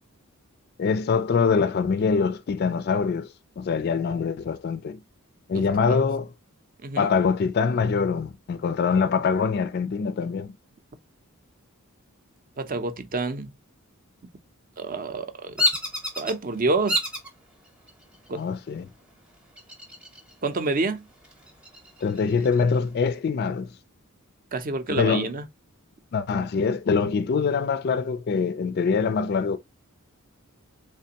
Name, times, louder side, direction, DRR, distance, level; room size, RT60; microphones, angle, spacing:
voice 1, 0.8-3.3 3.6-5.0 5.5-6.3 7.0-10.5 18.3-18.9 22.0-23.7 24.9-25.3 26.1-29.6, left 5 dB, 45° left, 0.3 m, -24 dB
voice 2, 12.6-13.5 14.8-15.6 16.2-17.0 18.3-18.4 20.4-21.0 24.5-25.4, right 3 dB, 40° right, 0.6 m, -28 dB
Bird vocalization bird call bird song, 15.6-16.3 16.9-17.3 17.9-18.4 19.6-20.3 20.7-20.8 21.2-22.6, left 1 dB, 5° right, 0.8 m, -28 dB
3.3 x 3.3 x 2.8 m
head